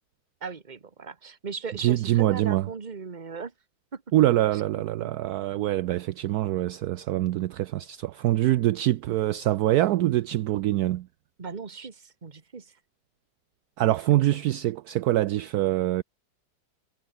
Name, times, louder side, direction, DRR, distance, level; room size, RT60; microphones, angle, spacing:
voice 1, 0.4-3.5 3.9-4.0 4.5-4.6 5.0-5.1 11.4-12.7 14.3-14.4, right 5 dB, 25° right, 1.4 m, -38 dB
voice 2, 1.8-2.7 4.1-11.1 13.8-16.0, right 14 dB, 75° right, 0.9 m, -24 dB
omnidirectional pair, 2.1 m